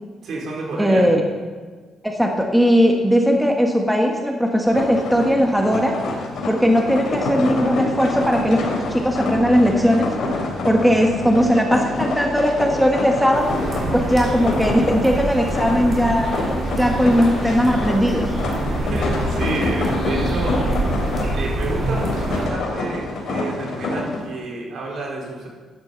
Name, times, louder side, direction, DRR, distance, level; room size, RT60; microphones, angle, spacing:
voice 1, 0.2-1.0 18.8-20.9 21.3-25.5, right 2 dB, 70° right, -3 dB, 4.4 m, -30 dB
voice 2, 0.8-1.2 2.0-6.0 6.5-10.1 10.6-13.6 13.9-16.3 16.8-18.3, equal, 5° right, 1 dB, 1.5 m, -18 dB
sound 1, 4.7-24.2, left 2 dB, 65° left, 3.7 m, -27 dB
sound 2, 13.3-22.5, right 2 dB, 40° right, 3.8 m, -26 dB
14.0 x 10.5 x 4.0 m, 1.4 s
cardioid pair, 90°, 0 cm